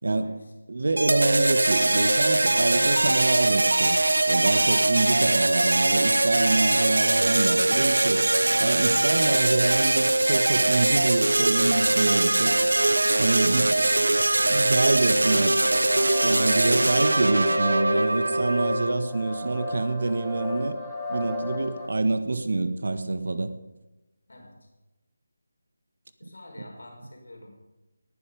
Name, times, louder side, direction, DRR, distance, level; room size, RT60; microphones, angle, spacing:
voice 1, 0.0-0.5 24.3-24.5 26.2-27.5, left 1 dB, 75° left, 1 dB, 5.2 m, -47 dB
voice 2, 0.7-4.0 4.2-8.2 8.6-12.5 13.2-13.8 14.5-15.5 16.2-20.8 21.1-23.5, right 2 dB, 65° right, 10 dB, 1.5 m, -26 dB
sound 1, 1.0-18.9, right 2 dB, 80° right, 0.7 m, -22 dB
sound 2, 15.3-21.9, left 3 dB, ahead, 3.0 m, -34 dB
19.0 x 10.5 x 5.3 m, 1.1 s
figure-of-eight pair, 160°, 0 cm